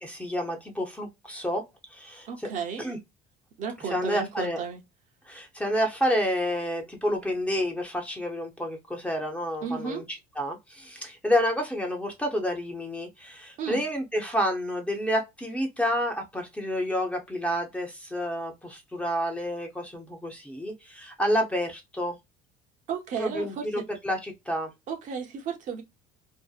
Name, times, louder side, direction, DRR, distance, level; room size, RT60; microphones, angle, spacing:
voice 1, 0.0-1.6 1.9-2.3 2.8-3.0 3.9-4.6 5.3-10.0 10.4-22.2 23.2-24.7, equal, 5° left, 0.6 m, -29 dB
voice 2, 2.3-2.9 3.6-4.8 9.6-10.0 13.6-13.8 22.9-23.8 24.9-25.8, right 6 dB, 45° right, 0.7 m, -33 dB
2.7 x 2.1 x 2.3 m
cardioid pair, 125°, 18 cm